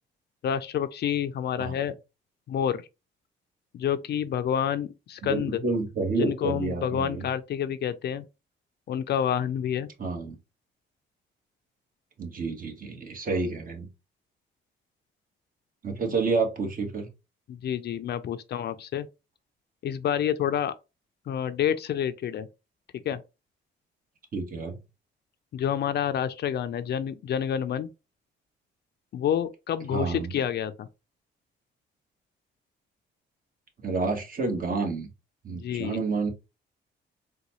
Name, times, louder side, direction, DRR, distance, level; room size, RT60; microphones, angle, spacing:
voice 1, 0.4-1.9 2.5-2.9 3.7-5.6 6.2-8.2 8.9-9.9 17.5-19.1 19.8-20.7 21.3-22.5 23.1-23.2 25.5-27.9 29.1-30.9 35.5-36.0, left 9 dB, 55° left, 0.4 m, -28 dB
voice 2, 5.2-7.2 10.0-10.4 12.2-13.9 15.8-17.1 24.3-24.8 29.9-30.3 33.8-35.1 35.4-36.3, right 3 dB, 45° right, 1.3 m, -29 dB
3.8 x 2.3 x 3.0 m
cardioid pair, 90°, 20 cm